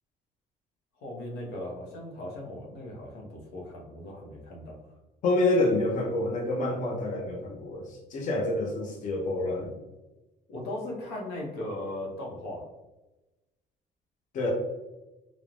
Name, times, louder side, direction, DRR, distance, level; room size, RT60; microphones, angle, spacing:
voice 1, 1.0-4.8 10.5-12.6, left 1 dB, 90° left, -2 dB, 0.8 m, -38 dB
voice 2, 5.2-9.7 14.3-14.5, left 2 dB, 50° left, -1 dB, 0.6 m, -27 dB
3.0 x 2.0 x 2.5 m, 1.0 s
cardioid pair, 110°, 17 cm